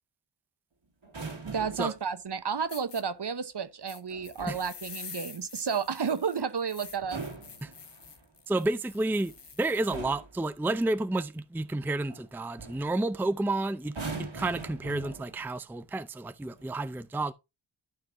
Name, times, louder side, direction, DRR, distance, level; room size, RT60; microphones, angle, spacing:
sound 1, 1.0-2.0 4.1-4.7 6.9-8.3 9.3-9.5 9.9-10.4 12.1-12.3 12.6-12.9 13.8-15.5 16.4-16.7, right 3 dB, 75° right, 2.3 m, -41 dB
voice 1, 1.4-7.2, right 6 dB, 55° right, 1.0 m, -32 dB
sound 2, 2.3-2.4 2.7-3.0 3.9-10.0, left 5 dB, 60° left, 1.4 m, -47 dB
voice 2, 8.5-17.3, right 2 dB, 5° right, 0.5 m, -31 dB
12.5 x 5.7 x 2.6 m
wide cardioid pair, 90°, 47 cm